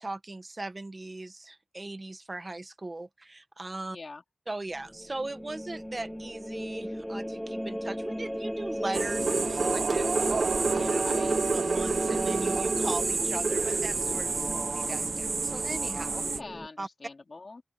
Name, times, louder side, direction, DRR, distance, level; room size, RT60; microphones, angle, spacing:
voice 1, 0.0-4.0 4.5-11.0 11.5-16.2 16.8-16.9, right 2 dB, 35° right, 1.5 m, -39 dB
voice 2, 3.9-4.2 11.0-11.4 16.2-17.6, left 3 dB, 55° left, 3.2 m, -43 dB
sound 1, 4.7-16.7, equal, 5° left, 2.1 m, -36 dB
sound 2, 8.9-16.4, right 4 dB, 75° right, 1.1 m, -28 dB
open air
wide cardioid pair, 70°, 0 cm